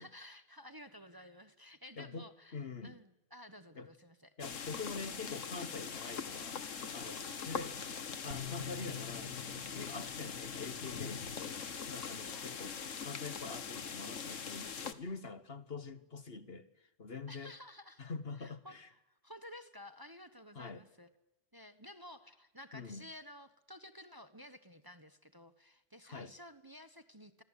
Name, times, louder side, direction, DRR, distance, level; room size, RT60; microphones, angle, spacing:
voice 1, 0.0-4.3 7.0-7.5 12.2-12.5 17.3-18.0 18.4-21.1 21.5-27.4, left 1 dB, 15° right, 10 dB, 1.2 m, -53 dB
voice 2, 2.5-3.0 3.8-3.9 4.4-6.6 6.9-7.7 8.2-11.6 11.9-12.7 13.0-17.5 18.0-18.9 20.5-20.8 22.7-23.0 26.0-26.3, left 4 dB, 50° left, 12 dB, 1.4 m, -45 dB
sound 1, 4.4-14.9, left 6 dB, 70° left, 1.7 m, -42 dB
sound 2, 8.3-11.6, left 8 dB, 55° right, 3.3 m, -49 dB
26.5 x 25.5 x 8.3 m, 0.95 s
omnidirectional pair, 1.4 m